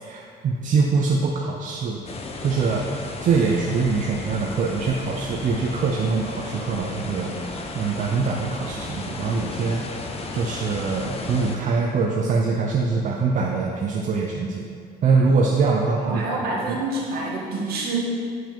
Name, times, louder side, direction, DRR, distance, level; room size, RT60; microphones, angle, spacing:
voice 1, 0.0-2.0 2.4-9.8 10.3-14.7 15.0-16.2 16.7-16.8, right 4 dB, 50° right, -1 dB, 0.6 m, -23 dB
sound 1, 2.0-11.6, left 3 dB, 35° left, 0.8 m, -34 dB
voice 2, 16.0-18.0, right 2 dB, 65° right, -3 dB, 1.7 m, -27 dB
8.0 x 4.9 x 4.5 m, 2.2 s
cardioid pair, 110°, 17 cm